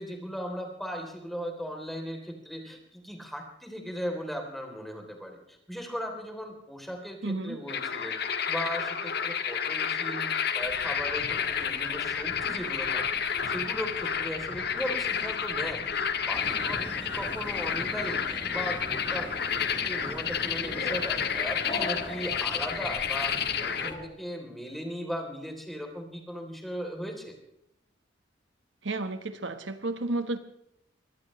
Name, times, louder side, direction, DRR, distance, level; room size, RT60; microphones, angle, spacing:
voice 1, 0.0-27.3, equal, ahead, 2 dB, 3.4 m, -38 dB
voice 2, 7.2-7.6 28.8-30.4, right 2 dB, 80° right, 9 dB, 1.4 m, -32 dB
sound 1, 7.7-23.9, left 7 dB, 60° left, 1.5 m, -30 dB
sound 2, 10.6-24.0, left 1 dB, 40° left, 5.1 m, -44 dB
sound 3, 16.3-24.0, right 1 dB, 25° right, 1.1 m, -44 dB
23.0 x 17.5 x 3.2 m, 0.79 s
head